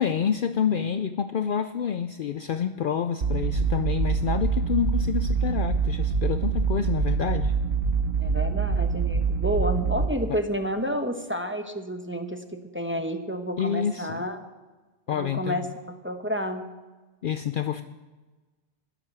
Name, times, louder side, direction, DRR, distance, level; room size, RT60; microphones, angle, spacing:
voice 1, 0.0-7.5 10.3-10.4 13.6-14.2 15.1-15.7 17.2-17.8, left 8 dB, 60° left, 10 dB, 0.6 m, -28 dB
sound 1, 3.2-10.1, right 5 dB, 55° right, 1.0 m, -25 dB
voice 2, 8.2-14.4 15.1-16.6, equal, 10° right, 5 dB, 0.9 m, -30 dB
12.5 x 11.5 x 6.1 m, 1.3 s
omnidirectional pair, 1.2 m